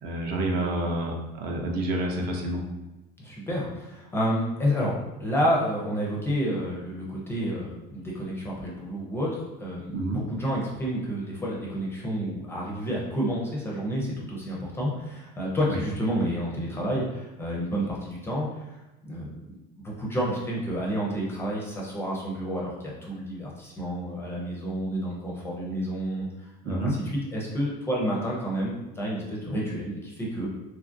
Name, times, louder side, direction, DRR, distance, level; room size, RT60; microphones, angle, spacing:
voice 1, 0.0-2.6 9.9-10.2 15.7-15.8 26.6-27.0, right 1 dB, 50° right, 1 dB, 0.5 m, -28 dB
voice 2, 3.2-4.9 5.2-18.8 19.0-19.3 19.8-26.3 26.6-30.5, equal, 10° left, -4 dB, 0.4 m, -30 dB
2.9 x 2.4 x 2.5 m, 1.0 s
cardioid pair, 150°, 21 cm